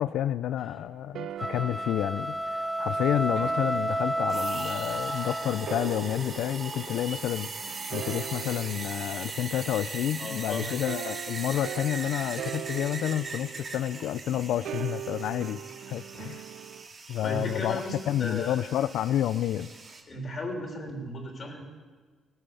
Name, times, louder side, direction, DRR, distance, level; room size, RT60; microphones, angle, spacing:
voice 1, 0.0-7.5 7.9-15.6 15.9-16.4 17.1-19.7, left 11 dB, 80° left, 16 dB, 0.4 m, -29 dB
sound 1, 0.6-10.3 10.9-16.9, right 11 dB, 70° right, 0.4 m, -42 dB
sound 2, 1.3-5.9, right 1 dB, 5° right, 0.9 m, -31 dB
sound 3, 4.3-20.0, right 3 dB, 45° right, 2.2 m, -40 dB
voice 2, 10.2-10.7 17.2-18.6 20.1-21.6, left 1 dB, 45° left, 0 dB, 3.3 m, -35 dB
18.0 x 9.1 x 6.9 m, 1.4 s
cardioid pair, 90°, 0 cm